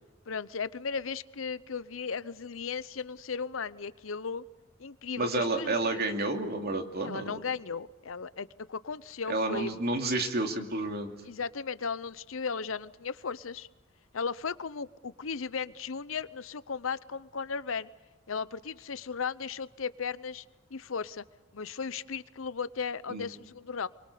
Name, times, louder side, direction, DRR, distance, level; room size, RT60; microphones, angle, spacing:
voice 1, 0.3-4.4 4.8-6.0 7.0-9.7 11.2-13.7 14.1-17.9 18.3-20.4 20.7-21.2 21.5-23.9, left 5 dB, 90° left, 16 dB, 0.8 m, -36 dB
voice 2, 5.2-7.3 9.3-11.1 23.1-23.3, right 2 dB, 55° right, 4 dB, 2.5 m, -30 dB
29.5 x 23.5 x 6.8 m, 1.2 s
head